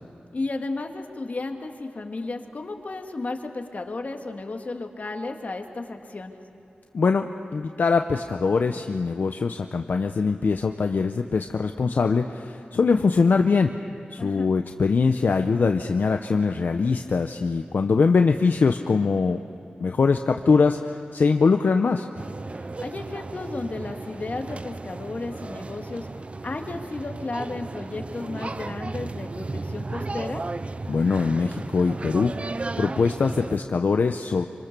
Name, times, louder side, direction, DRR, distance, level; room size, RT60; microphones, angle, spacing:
voice 1, 0.3-6.4 14.2-14.5 22.8-26.1 26.4-30.4, left 3 dB, 50° left, 4 dB, 2.1 m, -33 dB
voice 2, 6.9-7.3 7.5-13.7 14.1-19.4 19.8-22.1 30.9-32.3 32.8-34.5, left 4 dB, 70° left, 5 dB, 0.8 m, -22 dB
sound 1, 22.1-33.6, right 3 dB, 40° right, 0.6 m, -34 dB
26.0 x 25.5 x 6.8 m, 2.6 s
wide cardioid pair, 75°, 3 cm